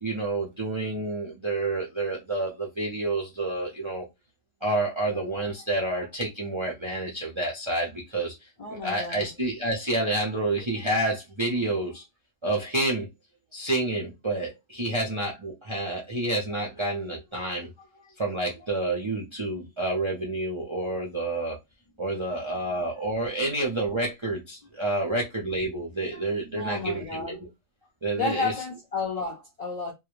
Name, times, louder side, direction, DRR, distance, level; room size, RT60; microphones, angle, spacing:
voice 1, 0.0-4.1 4.6-8.3 8.7-12.0 12.4-13.1 13.5-17.7 18.2-21.6 22.0-27.5 28.0-28.5, right 2 dB, 40° right, 0.4 m, -29 dB
voice 2, 8.6-9.3 26.5-27.4 28.1-29.9, left 4 dB, 55° left, 0.4 m, -31 dB
2.2 x 2.1 x 3.0 m
omnidirectional pair, 1.3 m